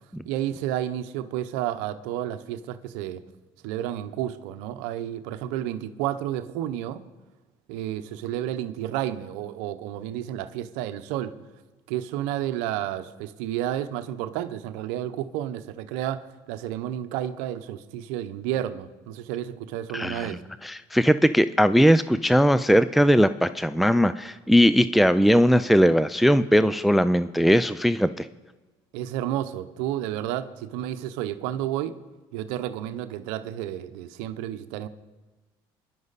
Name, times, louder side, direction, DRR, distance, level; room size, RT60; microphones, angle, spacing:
voice 1, 0.2-3.2 3.6-7.0 7.7-11.3 11.9-20.4 28.9-32.0 32.3-34.9, right 12 dB, 80° right, 10 dB, 0.8 m, -31 dB
voice 2, 19.9-28.3, equal, ahead, 13 dB, 0.4 m, -19 dB
22.5 x 11.0 x 4.1 m, 1.2 s
supercardioid pair, 85°, 12 cm